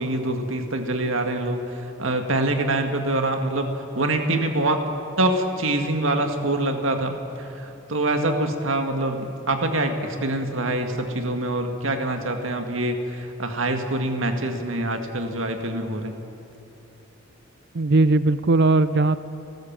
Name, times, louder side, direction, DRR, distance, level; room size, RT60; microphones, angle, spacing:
voice 1, 0.0-1.6 2.0-3.7 3.9-4.8 5.2-7.1 7.4-16.2, right 2 dB, 80° right, 5 dB, 2.0 m, -25 dB
voice 2, 17.7-19.2, right 2 dB, 55° right, 14 dB, 0.5 m, -18 dB
29.5 x 13.0 x 7.5 m, 2.8 s
head